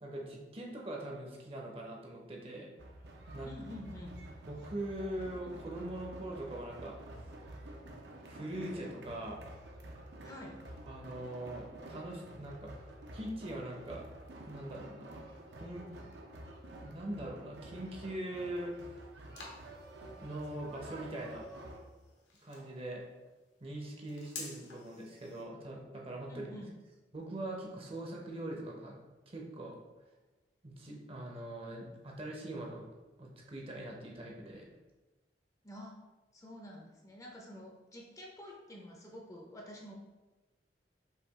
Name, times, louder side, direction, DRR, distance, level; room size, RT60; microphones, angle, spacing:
voice 1, 0.0-2.7 3.3-3.5 4.5-7.0 8.2-9.4 10.9-12.7 13.1-14.0 14.5-15.2 15.6-15.9 16.8-18.7 20.2-21.5 22.4-23.0 23.6-26.5 27.1-29.8 30.6-32.8 33.2-34.7, right 1 dB, 30° right, -1 dB, 0.7 m, -42 dB
sound 1, 2.8-21.8, right 1 dB, 70° right, 0.7 m, -49 dB
voice 2, 3.4-4.2 10.2-10.5 26.3-26.7 35.6-35.9 36.3-39.9, left 1 dB, 20° left, -1 dB, 0.6 m, -48 dB
sound 2, 18.2-25.4, left 3 dB, 75° left, 1.0 m, -52 dB
5.6 x 2.4 x 3.5 m, 1.1 s
head